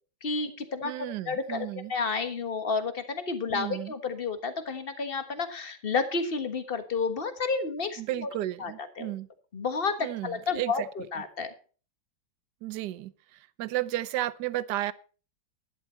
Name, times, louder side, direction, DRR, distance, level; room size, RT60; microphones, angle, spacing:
voice 1, 0.2-8.3 8.6-8.7 9.0-9.1 9.5-10.8 11.1-11.5, left 4 dB, 30° left, 9 dB, 1.4 m, -31 dB
voice 2, 0.8-1.9 3.5-3.9 8.0-9.3 10.0-10.9 12.6-14.9, right 15 dB, 65° right, 18 dB, 1.1 m, -33 dB
11.5 x 11.0 x 4.3 m, 0.38 s
omnidirectional pair, 2.2 m